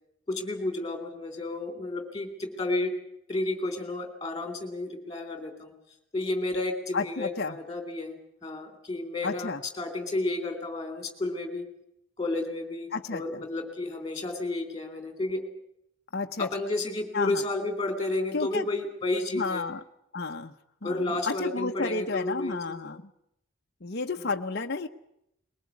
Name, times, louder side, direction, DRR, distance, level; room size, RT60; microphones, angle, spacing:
voice 1, 0.3-2.9 3.3-5.7 6.1-11.7 12.2-15.4 16.4-19.7 20.8-22.9 24.2-24.3, left 2 dB, 20° left, 7 dB, 3.4 m, -32 dB
voice 2, 6.9-7.6 9.2-9.6 12.9-13.4 16.1-16.5 17.1-17.4 18.3-18.7 19.3-19.8 20.1-20.5 20.8-23.1 23.8-24.9, left 4 dB, 50° left, 4 dB, 0.9 m, -31 dB
21.5 x 19.0 x 8.4 m, 0.78 s
head